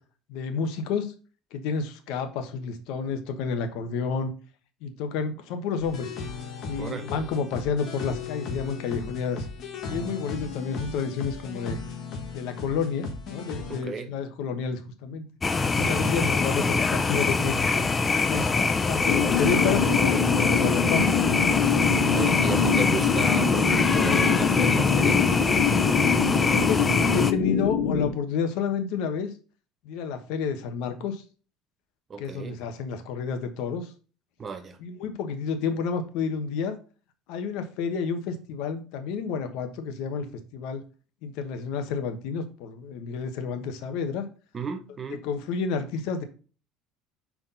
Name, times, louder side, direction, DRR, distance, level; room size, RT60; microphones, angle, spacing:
voice 1, 0.3-1.1 1.5-4.3 4.8-6.1 6.6-9.5 9.9-11.8 12.3-15.2 15.7-17.9 18.3-21.0 26.5-29.3 29.8-31.2 32.2-33.9 34.8-36.8 37.3-40.3 40.5-40.8 41.2-44.3 45.2-46.2, left 5 dB, 70° left, 1.1 m, -30 dB
sound 1, 5.8-13.8, left 4 dB, 50° left, 1.4 m, -37 dB
voice 2, 13.7-14.1 15.8-16.1 22.1-25.4 32.1-32.6 34.4-34.8 44.5-45.2, right 5 dB, 25° right, 0.7 m, -34 dB
sound 2, 15.4-27.3, left 4 dB, 20° left, 0.5 m, -24 dB
sound 3, 19.0-28.1, left 6 dB, 90° left, 2.9 m, -25 dB
5.7 x 4.8 x 4.0 m
cardioid pair, 150°, 0 cm